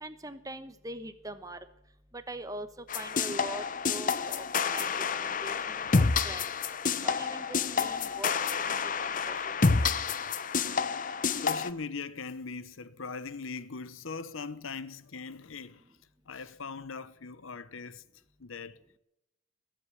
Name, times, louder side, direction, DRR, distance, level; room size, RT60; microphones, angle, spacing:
voice 1, 0.0-1.6 2.1-2.7 2.9-6.5 7.0-8.3 8.6-9.4 9.8-9.9, right 1 dB, 15° right, 1.1 m, -42 dB
sound 1, 2.9-11.7, left 5 dB, 40° left, 0.7 m, -29 dB
voice 2, 11.3-15.9 16.3-18.0 18.4-18.8, left 4 dB, 80° left, 0.9 m, -40 dB
20.0 x 7.8 x 8.6 m
head